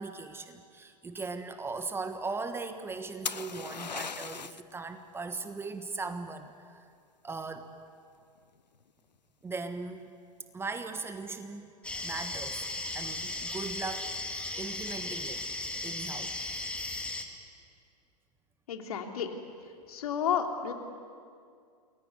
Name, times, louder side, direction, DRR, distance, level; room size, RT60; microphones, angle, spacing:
voice 1, 0.0-6.8 7.2-7.7 9.4-10.1 10.5-11.7 12.0-12.6 12.9-14.1 14.6-15.4 15.8-16.3, right 3 dB, 10° right, 9 dB, 1.3 m, -38 dB
sound 1, 3.3-4.7 8.4-8.8, left 6 dB, 85° left, 0.6 m, -37 dB
sound 2, 11.8-17.3, left 2 dB, 5° left, 2.3 m, -36 dB
voice 2, 18.7-19.3 19.9-20.7, left 8 dB, 60° left, 3 dB, 3.3 m, -31 dB
28.5 x 21.0 x 9.7 m, 2.2 s
figure-of-eight pair, 105°, 21 cm